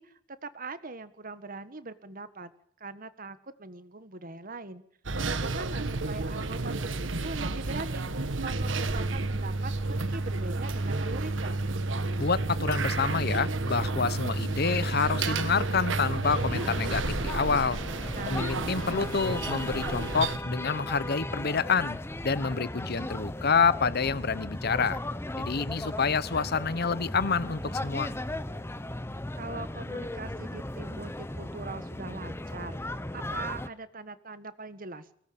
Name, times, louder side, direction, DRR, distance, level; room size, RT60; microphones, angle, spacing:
voice 1, 0.0-2.5 2.8-4.8 5.2-8.1 8.4-11.6 18.1-18.6 29.4-32.8 33.1-35.1, right 3 dB, 45° right, 1.6 m, -41 dB
sound 1, 5.1-20.4, right 3 dB, 75° right, 1.5 m, -31 dB
voice 2, 12.2-17.8 18.3-22.0 22.2-25.0 25.4-28.2, left 5 dB, 55° left, 0.9 m, -28 dB
sound 2, 16.2-33.7, left 1 dB, 15° left, 1.0 m, -36 dB
23.0 x 18.0 x 8.8 m
head